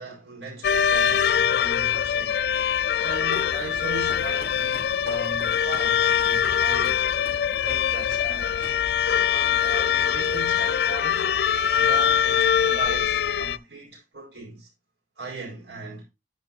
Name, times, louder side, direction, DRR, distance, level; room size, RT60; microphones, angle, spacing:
voice 1, 0.0-2.4 3.0-7.0 7.5-8.7 9.0-11.3 11.8-14.7 15.2-16.0, right 3 dB, 85° right, 5.0 m, -38 dB
sound 1, 0.6-13.6, left 8 dB, 65° left, 0.3 m, -23 dB
Walk footsteps, 3.0-9.0 9.4-9.7 10.0-10.8, right 1 dB, 65° right, 4.1 m, -45 dB
11.0 x 5.3 x 2.7 m
head